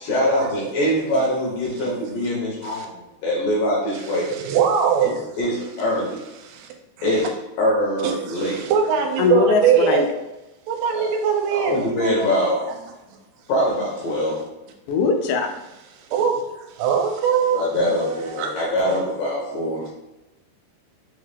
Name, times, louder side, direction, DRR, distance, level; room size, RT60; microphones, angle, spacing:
voice 1, 0.0-4.3 5.0-6.2 7.0-8.6 10.9-11.1 11.5-12.6 13.5-14.4 17.5-19.9, equal, 70° left, -4 dB, 2.1 m, -23 dB
voice 2, 4.3-5.3 6.5-6.7 8.0-10.1 10.7-12.5 16.1-16.4 16.7-19.0, right 7 dB, 85° right, 3 dB, 2.6 m, -22 dB
voice 3, 9.2-10.1 14.9-15.5, left 4 dB, 90° left, 4 dB, 2.8 m, -20 dB
6.3 x 2.3 x 3.3 m, 0.99 s
omnidirectional pair, 4.8 m